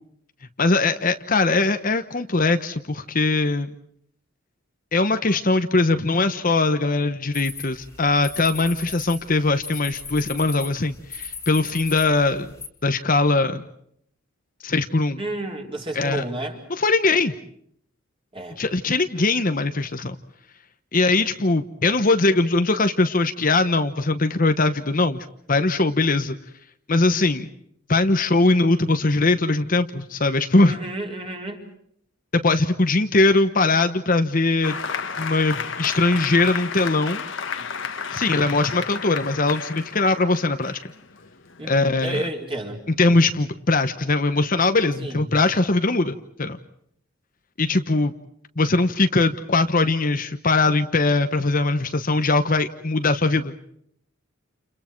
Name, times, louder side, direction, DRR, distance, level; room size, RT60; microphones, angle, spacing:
voice 1, 0.6-3.7 4.9-12.5 12.8-13.7 14.6-15.2 15.9-16.2 16.7-17.3 18.6-20.2 20.9-26.4 26.9-27.5 27.9-30.8 32.3-34.8 35.2-37.2 38.1-40.8 41.7-42.3 43.0-46.6 47.6-48.1 48.6-53.5, left 3 dB, 40° left, 8 dB, 1.0 m, -21 dB
sound 1, 7.3-12.7, left 5 dB, 15° left, 2.4 m, -37 dB
voice 2, 15.2-16.6 18.3-18.6 30.6-31.6 41.6-43.1 45.0-45.2 45.5-45.6, right 1 dB, 25° right, 1 dB, 4.4 m, -31 dB
Applause, 34.6-41.8, left 6 dB, 60° left, 1.6 m, -32 dB
30.0 x 29.5 x 4.6 m, 0.68 s
head